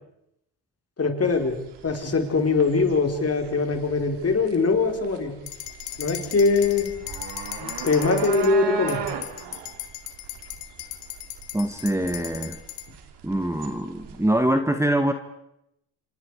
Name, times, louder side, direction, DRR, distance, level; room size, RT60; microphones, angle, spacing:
voice 1, 1.0-1.6 1.8-5.3 6.0-6.9 7.6-9.0, left 4 dB, 35° left, 4 dB, 4.4 m, -22 dB
sound 1, 1.3-14.4, right 7 dB, 70° right, 3.1 m, -37 dB
sound 2, 5.5-8.5 8.9-12.9, left 13 dB, 70° left, 2.5 m, -37 dB
voice 2, 11.5-12.6 13.2-15.1, right 1 dB, 5° right, 7 dB, 1.8 m, -24 dB
28.0 x 26.0 x 4.9 m, 0.79 s
supercardioid pair, 70°, 42 cm